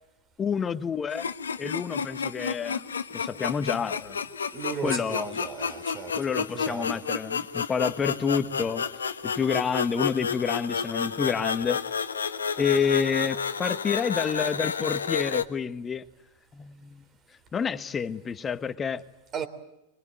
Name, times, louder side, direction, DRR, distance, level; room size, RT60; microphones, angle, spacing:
voice 1, 0.4-1.3 1.6-2.8 3.1-4.2 4.8-5.4 6.2-8.8 9.2-11.8 12.6-16.0 16.5-17.0 17.5-19.0, left 6 dB, 25° left, 12 dB, 1.3 m, -28 dB
sound 1, 1.1-15.4, left 6 dB, 90° left, 1.3 m, -31 dB
voice 2, 4.5-7.0 19.3-19.5, right 7 dB, 30° right, 11 dB, 3.3 m, -36 dB
24.0 x 23.5 x 9.0 m, 0.96 s
hypercardioid pair, 100°, 0 cm